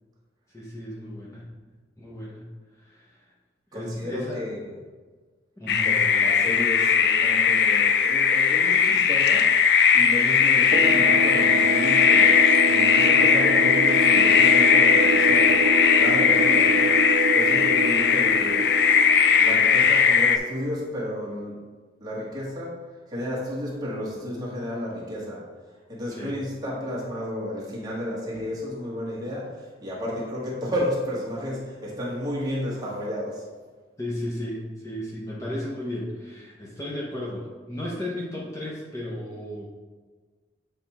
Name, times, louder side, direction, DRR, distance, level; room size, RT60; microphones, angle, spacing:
voice 1, 0.5-1.5 2.0-2.5 2.7-3.3 3.7-4.5 5.6-6.0 26.1-26.3 34.0-39.6, left 1 dB, 20° left, -4 dB, 0.8 m, -34 dB
voice 2, 3.7-4.7 5.8-9.5 9.9-12.3 12.7-15.7 16.0-16.9 17.3-18.7 19.4-21.6 22.0-25.4 25.9-33.4, left 1 dB, 25° right, -5 dB, 1.6 m, -32 dB
sound 1, 5.7-20.4, left 6 dB, 65° left, 0.4 m, -19 dB
sound 2, 10.7-20.0, right 2 dB, 70° right, 0.4 m, -27 dB
7.7 x 3.5 x 4.2 m, 1.4 s
head